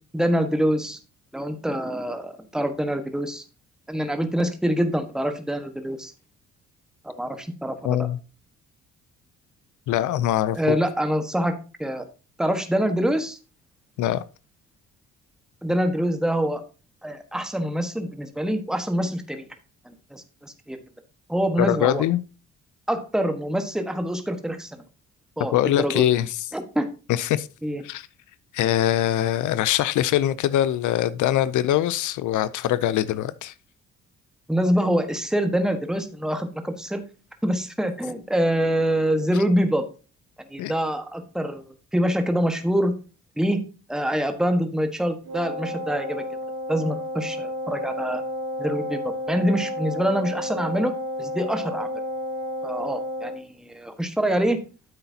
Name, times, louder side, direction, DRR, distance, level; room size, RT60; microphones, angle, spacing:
voice 1, 0.1-1.0 1.3-3.4 3.9-6.1 7.0-8.0 10.5-12.0 12.4-13.4 15.6-16.6 17.0-19.4 19.8-20.8 21.3-22.0 22.9-24.8 25.4-26.0 26.5-26.9 27.6-27.8 34.5-37.0 37.4-39.9 40.5-41.6 41.9-42.9 43.4-43.6 43.9-46.2 46.7-48.2 48.6-49.0 49.3-50.9 51.2-52.0 52.6-54.6, equal, ahead, 1.3 m, -25 dB
voice 2, 7.8-8.2 9.9-10.8 14.0-14.2 21.6-22.2 25.5-26.5 27.1-27.5 27.8-28.1 28.5-33.5 40.6-40.7, left 12 dB, 80° left, 0.5 m, -23 dB
Wind instrument woodwind instrument, 45.2-53.5, left 1 dB, 75° right, 3.3 m, -31 dB
9.9 x 7.8 x 2.8 m
cardioid pair, 90°, 30 cm